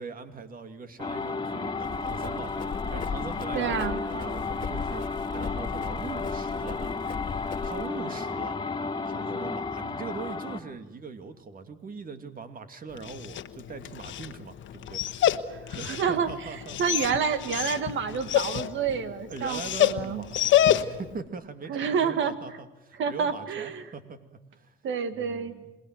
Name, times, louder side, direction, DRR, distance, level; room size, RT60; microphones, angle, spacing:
voice 1, 0.0-2.5 2.9-5.1 5.3-7.0 7.6-8.6 9.1-15.0 15.7-17.0 19.3-24.7 25.1-25.8, right 4 dB, 45° right, 8 dB, 2.6 m, -41 dB
sound 1, 1.0-10.6, left 4 dB, 20° left, 2.6 m, -33 dB
Run, 1.8-7.9, left 6 dB, 45° left, 2.1 m, -38 dB
voice 2, 3.5-4.0 15.5-16.3 16.8-20.2 21.7-22.3 23.0-23.9 24.8-25.5, right 6 dB, 75° right, 11 dB, 2.1 m, -28 dB
Dog, 12.9-21.2, left 11 dB, 75° left, 1.2 m, -28 dB
27.5 x 20.5 x 9.1 m, 0.98 s
cardioid pair, 90°, 20 cm